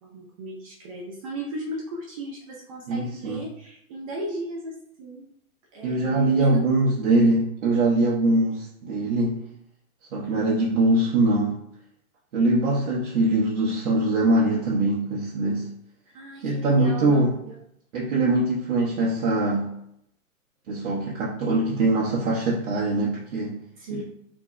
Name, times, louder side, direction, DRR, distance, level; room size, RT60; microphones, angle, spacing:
voice 1, 0.0-5.3 5.7-6.6 16.1-17.6 23.8-24.0, right 1 dB, 25° right, -2 dB, 0.4 m, -36 dB
voice 2, 2.9-3.4 5.8-9.4 10.1-11.6 12.3-15.6 16.4-17.3 17.9-19.7 20.7-23.6 23.9-24.0, right 2 dB, 65° right, -5 dB, 1.0 m, -22 dB
3.6 x 2.0 x 3.6 m, 0.74 s
hypercardioid pair, 120°, 43 cm